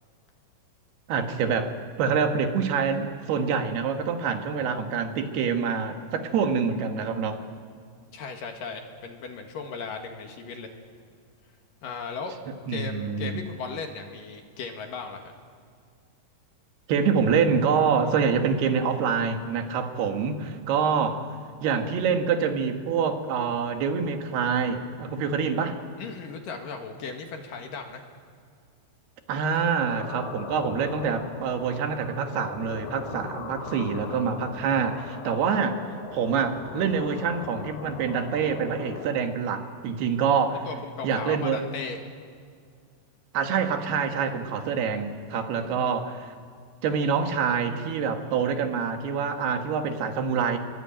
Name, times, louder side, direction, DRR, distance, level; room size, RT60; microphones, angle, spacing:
voice 1, 1.1-1.7 2.0-7.4 12.7-13.4 16.9-21.3 21.6-25.8 29.3-35.8 36.1-40.7 41.0-41.6 43.3-46.3 46.8-50.6, right 6 dB, 80° right, 5 dB, 3.7 m, -26 dB
voice 2, 8.1-10.7 11.8-12.4 12.7-15.3 26.0-28.0 40.7-42.0 45.5-46.0, left 4 dB, 60° left, 4 dB, 3.2 m, -37 dB
sound 1, 29.8-39.1, left 6 dB, 85° left, 3.8 m, -40 dB
27.0 x 22.0 x 9.0 m, 2.2 s
omnidirectional pair, 4.6 m